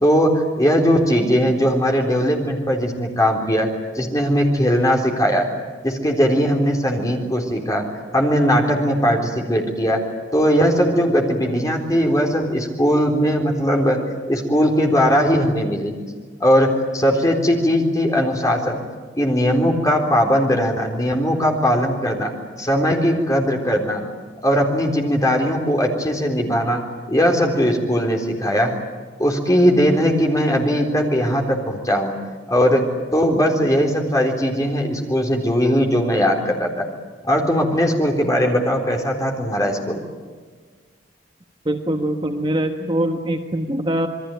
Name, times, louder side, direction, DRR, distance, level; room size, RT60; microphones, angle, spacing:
voice 1, 0.0-3.7 3.9-5.5 5.8-7.8 8.1-10.0 10.3-14.0 14.3-15.9 16.4-18.8 19.2-22.3 22.6-24.0 24.4-26.8 27.1-28.7 29.2-32.1 32.5-32.8 33.1-36.9 37.2-40.0, equal, 15° left, 2 dB, 3.8 m, -19 dB
voice 2, 41.6-44.1, right 1 dB, 25° right, 4 dB, 1.4 m, -23 dB
28.0 x 22.0 x 9.1 m, 1.5 s
head